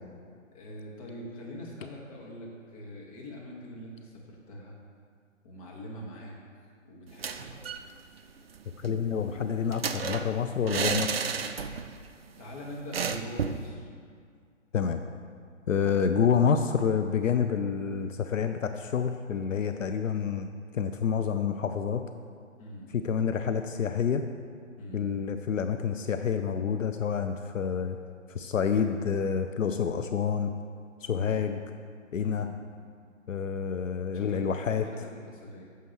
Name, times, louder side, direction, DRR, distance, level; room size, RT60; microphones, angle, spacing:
voice 1, 0.5-4.7 5.4-7.6 12.4-13.9 22.6-22.9 24.8-25.1 31.1-31.5 32.2-32.5 34.1-35.6, equal, 25° left, -3 dB, 1.3 m, -43 dB
sound 1, 7.1-7.9 8.2-8.3 8.6-12.0 12.3-12.4 12.9-13.7, right 6 dB, 50° right, 0.4 m, -33 dB
voice 2, 8.8-11.2 14.7-15.0 15.7-20.5 20.7-22.0 22.9-24.3 24.9-28.0 28.3-30.5 31.0-31.6 32.1-32.5 33.3-34.8, left 7 dB, 80° left, 8 dB, 0.5 m, -28 dB
9.4 x 7.1 x 3.0 m, 2.1 s
figure-of-eight pair, 140°, 39 cm